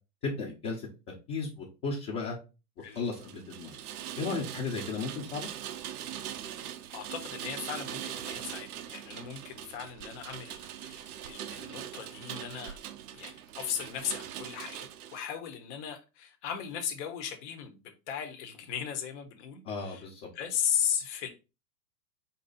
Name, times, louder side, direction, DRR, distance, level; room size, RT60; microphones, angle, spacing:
voice 1, 0.2-2.4 2.9-3.8 4.2-5.5 19.6-20.3, left 4 dB, 30° left, 1.1 m, -35 dB
Rain, 2.9-15.2, right 10 dB, 65° right, 0.6 m, -41 dB
voice 2, 6.9-12.8 13.1-17.8 18.1-20.1 20.3-21.3, left 8 dB, 45° left, 1.1 m, -36 dB
4.6 x 2.8 x 4.1 m
hypercardioid pair, 140°, 50 cm